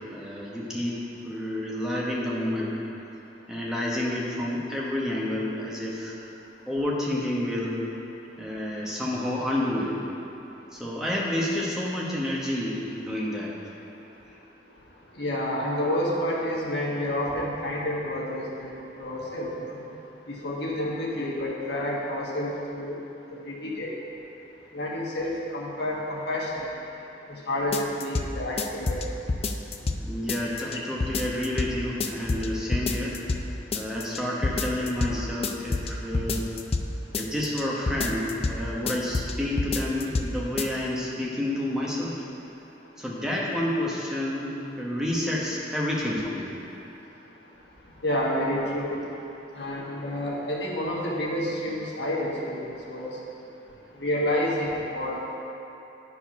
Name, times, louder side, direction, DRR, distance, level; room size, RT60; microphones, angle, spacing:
voice 1, 0.1-2.8 3.5-6.1 6.7-7.8 8.4-10.0 10.7-13.5 29.8-33.1 33.7-36.5 37.2-42.2 43.0-44.5 44.8-46.5, left 1 dB, 5° right, -5 dB, 1.1 m, -29 dB
voice 2, 15.2-19.8 20.3-22.9 23.4-23.9 24.7-26.7 27.3-29.0 48.0-49.0 49.6-53.1 54.0-55.4, left 1 dB, 80° left, -4 dB, 1.5 m, -29 dB
sound 1, 27.7-28.3 28.6-30.0 30.3-30.8 31.0-31.7 32.0-32.5 32.7-33.4 33.7-34.2 34.4-35.1 35.4-36.9 37.1-37.6 37.9-38.6 38.9-39.3 39.6-40.3 40.6-40.7, left 3 dB, 35° left, 0.4 m, -27 dB
9.8 x 4.7 x 5.7 m, 2.8 s
head